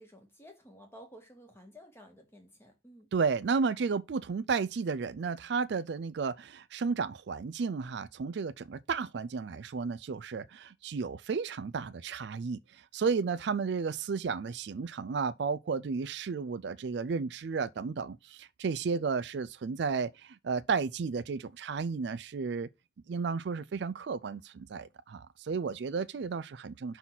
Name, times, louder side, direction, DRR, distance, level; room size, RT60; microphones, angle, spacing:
voice 1, 0.0-3.1, equal, 10° left, 1.8 m, -53 dB
voice 2, 3.1-12.6 12.9-22.7 23.1-27.0, right 5 dB, 60° right, 0.4 m, -33 dB
5.7 x 4.0 x 6.0 m
head